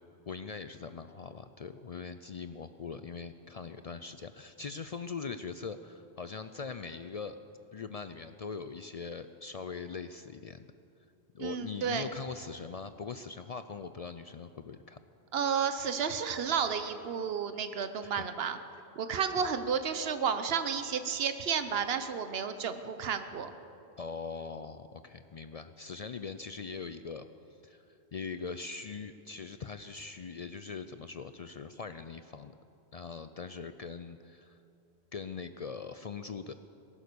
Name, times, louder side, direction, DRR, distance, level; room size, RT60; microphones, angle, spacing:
voice 1, 0.3-7.4 7.7-10.7 11.3-15.0 18.0-18.3 19.4-19.5 23.1-23.2 24.0-27.3 27.6-32.5 32.9-34.6 35.1-36.5, left 5 dB, 55° left, 10 dB, 0.4 m, -41 dB
voice 2, 11.4-12.1 15.3-18.6 19.0-23.5, right 6 dB, 65° right, 10 dB, 1.1 m, -32 dB
18.5 x 11.5 x 6.9 m, 2.7 s
omnidirectional pair, 1.1 m